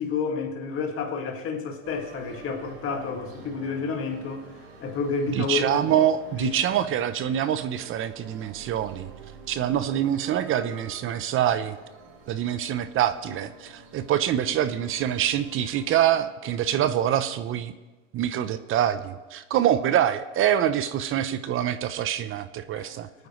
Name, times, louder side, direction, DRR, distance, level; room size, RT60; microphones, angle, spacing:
voice 1, 0.0-4.5 4.8-5.8 6.4-6.9 22.7-22.9, left 5 dB, 35° left, 2.0 m, -30 dB
sound 1, 1.8-16.2, right 4 dB, 70° right, 4.2 m, -48 dB
voice 2, 5.3-9.1 9.5-11.8 12.3-17.7 18.1-23.1, right 10 dB, 35° right, 0.7 m, -25 dB
26.5 x 9.5 x 3.1 m
supercardioid pair, 110°, 36 cm